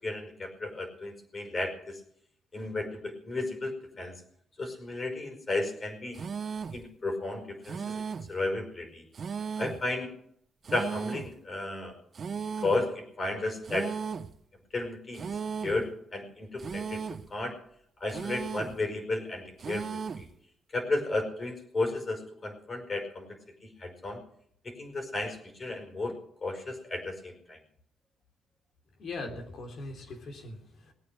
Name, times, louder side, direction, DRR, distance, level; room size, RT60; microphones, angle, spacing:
voice 1, 0.0-2.0 2.5-4.2 4.6-6.2 6.7-9.0 9.6-10.2 10.7-11.9 12.6-14.0 14.7-15.3 15.6-17.0 17.3-17.6 18.0-20.3 20.7-23.3 23.6-24.2 24.6-26.1 26.4-27.6, left 2 dB, 35° left, 5 dB, 5.0 m, -33 dB
sound 1, 6.1-6.8 7.6-8.4 9.1-9.9 10.6-11.3 12.1-12.9 13.6-14.4 15.1-15.9 16.6-17.3 18.1-18.8 19.6-20.3, right 6 dB, 45° right, 0.7 m, -36 dB
voice 2, 29.0-30.9, left 2 dB, 60° left, 4 dB, 3.5 m, -40 dB
19.5 x 8.7 x 6.7 m, 0.68 s
cardioid pair, 90°, 0 cm